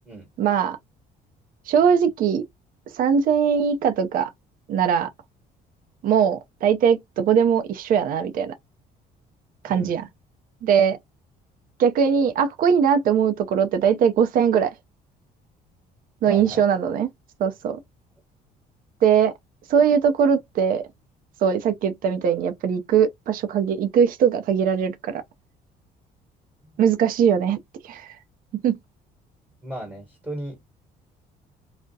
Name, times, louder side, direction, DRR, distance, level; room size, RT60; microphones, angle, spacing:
voice 1, 0.4-0.8 1.7-2.4 2.9-4.3 4.7-5.1 6.0-8.6 9.6-10.1 10.6-11.0 11.8-14.7 16.2-17.1 17.4-17.8 19.0-19.3 19.7-20.9 21.4-25.2 26.8-27.6 27.8-28.1 28.6-28.8, right 7 dB, 55° right, 0.5 m, -20 dB
voice 2, 16.2-16.6 29.6-30.6, right 1 dB, 10° right, 1.2 m, -35 dB
2.3 x 2.1 x 2.6 m
cardioid pair, 110°, 17 cm